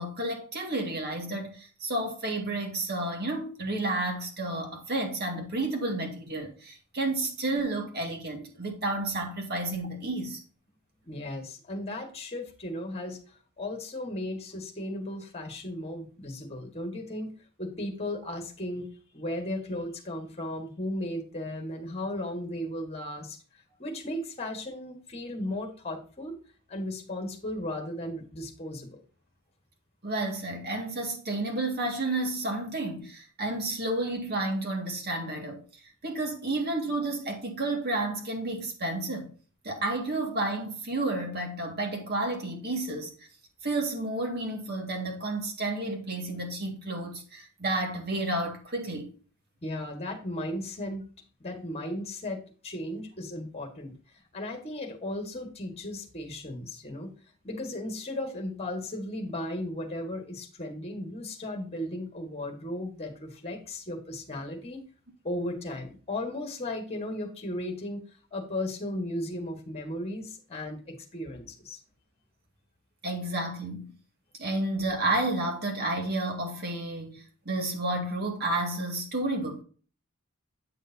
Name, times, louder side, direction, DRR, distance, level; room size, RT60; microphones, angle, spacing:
voice 1, 0.0-10.4 30.0-35.6 36.0-39.3 39.6-43.1 43.6-49.1 73.0-73.9 74.4-79.6, right 2 dB, 50° right, 1.9 m, -31 dB
voice 2, 11.0-13.2 13.6-17.3 17.6-18.9 19.1-23.4 23.8-26.4 26.7-29.0 49.6-51.0 51.4-53.9 54.3-57.1 57.4-64.8 65.2-68.0 68.3-71.8, left 1 dB, 30° left, 1.5 m, -35 dB
8.6 x 6.4 x 2.7 m
head